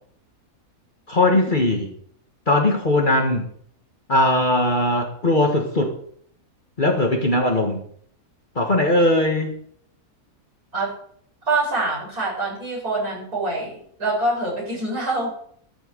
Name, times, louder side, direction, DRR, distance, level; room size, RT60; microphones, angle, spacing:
voice 1, 1.1-1.9 2.5-3.5 4.1-5.9 6.8-7.8 8.5-9.5, left 1 dB, 35° left, 2 dB, 1.6 m, -19 dB
voice 2, 11.5-15.3, right 2 dB, 85° right, -5 dB, 7.8 m, -25 dB
12.5 x 7.5 x 6.7 m, 0.62 s
omnidirectional pair, 1.6 m